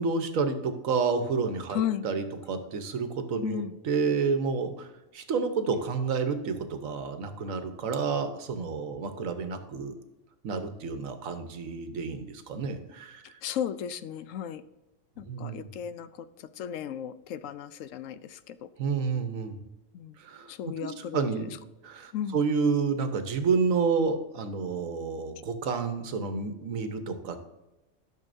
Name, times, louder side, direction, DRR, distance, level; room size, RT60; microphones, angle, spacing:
voice 1, 0.0-9.9 10.4-13.4 15.2-15.7 18.8-19.6 20.2-20.5 20.8-21.6 21.8-27.4, right 5 dB, 90° right, 8 dB, 1.4 m, -30 dB
voice 2, 1.7-2.1 3.4-3.8 13.2-14.6 15.2-18.7 19.9-20.2 20.5-21.5 22.1-22.4, left 10 dB, 80° left, 13 dB, 0.9 m, -35 dB
12.0 x 6.4 x 2.6 m, 0.99 s
omnidirectional pair, 1.4 m